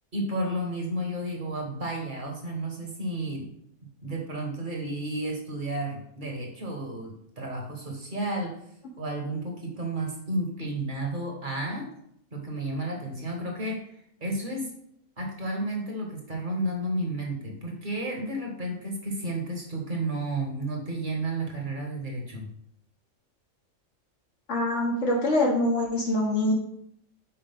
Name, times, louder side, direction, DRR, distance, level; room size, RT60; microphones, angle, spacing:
voice 1, 0.1-3.5 4.0-8.6 9.0-11.9 12.3-13.9 14.2-14.7 15.2-22.5, right 1 dB, 40° right, 0 dB, 1.5 m, -32 dB
voice 2, 24.5-26.5, left 1 dB, 65° left, -2 dB, 1.6 m, -24 dB
5.8 x 4.9 x 3.5 m, 0.70 s
omnidirectional pair, 1.3 m